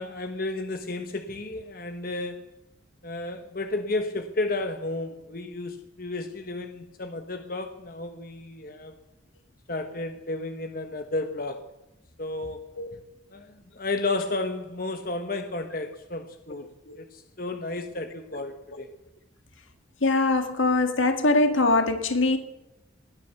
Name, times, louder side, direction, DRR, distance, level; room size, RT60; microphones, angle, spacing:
voice 1, 0.0-2.4 3.0-8.9 9.7-11.7 12.2-12.7 13.3-16.7 17.0-18.9, left 2 dB, 45° left, 1.1 m, -32 dB
voice 2, 20.0-22.4, left 2 dB, 80° left, 1.9 m, -22 dB
19.5 x 10.5 x 6.7 m
head